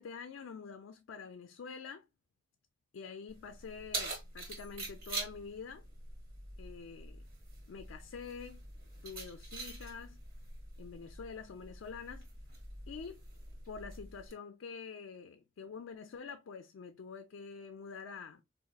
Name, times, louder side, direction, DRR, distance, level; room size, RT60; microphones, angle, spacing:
voice 1, 0.0-2.1 2.9-5.8 6.6-7.2 7.7-8.6 9.0-10.2 10.8-12.3 12.9-13.2 13.7-18.4, left 5 dB, 85° left, 0.4 m, -46 dB
Keys jangling, 3.3-14.3, right 2 dB, 45° right, 1.2 m, -45 dB
3.9 x 2.5 x 2.3 m
head